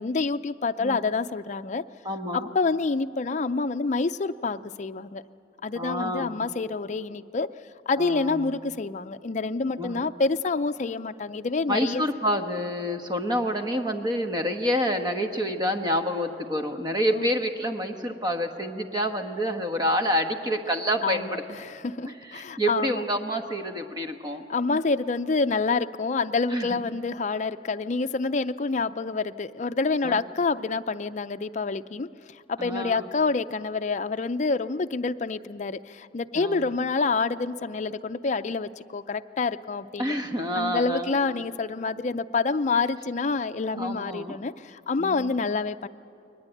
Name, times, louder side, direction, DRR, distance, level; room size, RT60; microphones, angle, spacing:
voice 1, 0.0-1.8 2.3-5.2 5.6-7.5 7.9-12.0 17.1-17.3 21.0-21.4 21.6-23.0 24.5-32.1 32.5-40.1 40.5-45.9, left 4 dB, 40° left, 10 dB, 0.5 m, -27 dB
voice 2, 2.0-2.5 5.7-6.4 8.0-8.5 9.8-10.0 11.7-21.4 22.0-24.4 24.7-24.8 26.5-26.8 30.0-30.2 32.6-33.1 36.3-36.7 40.0-41.2 43.7-44.4 45.0-45.4, equal, 25° right, 6 dB, 1.3 m, -28 dB
22.0 x 19.5 x 9.1 m, 2.5 s
head